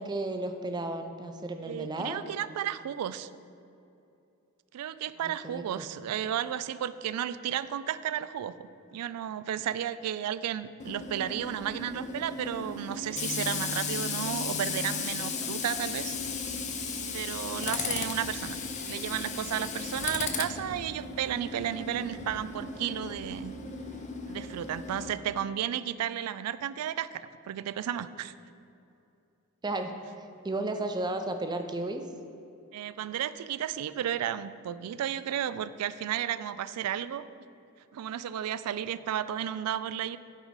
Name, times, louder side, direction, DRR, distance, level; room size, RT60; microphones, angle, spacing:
voice 1, 0.0-2.2 5.2-5.9 29.6-29.9 30.4-32.0, right 2 dB, 20° right, 5 dB, 0.4 m, -33 dB
voice 2, 1.6-3.3 4.7-16.2 17.1-18.6 18.9-23.5 24.3-28.3 32.7-37.2 37.9-40.2, right 10 dB, 85° right, 15 dB, 0.3 m, -33 dB
Tools, 10.8-25.1, left 4 dB, 35° left, 0.5 m, -35 dB
9.2 x 3.9 x 4.7 m, 2.7 s
head